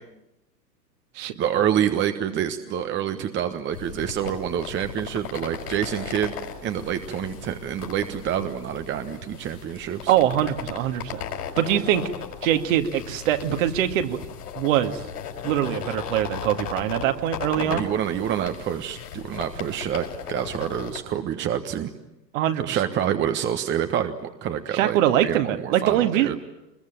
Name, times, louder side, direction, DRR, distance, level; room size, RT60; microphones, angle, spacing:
voice 1, 1.4-6.3 6.6-10.1 17.5-21.9 22.6-26.3, right 9 dB, 20° right, 8 dB, 1.3 m, -27 dB
sound 1, 3.7-21.0, left 8 dB, 65° left, 5.3 m, -37 dB
voice 2, 10.1-11.2 11.6-12.0 12.4-14.2 14.6-15.0 15.4-17.9 22.3-22.8 24.7-26.4, right 11 dB, 50° right, 7 dB, 2.2 m, -23 dB
25.0 x 21.5 x 9.2 m, 0.91 s
hypercardioid pair, 110°, 50 cm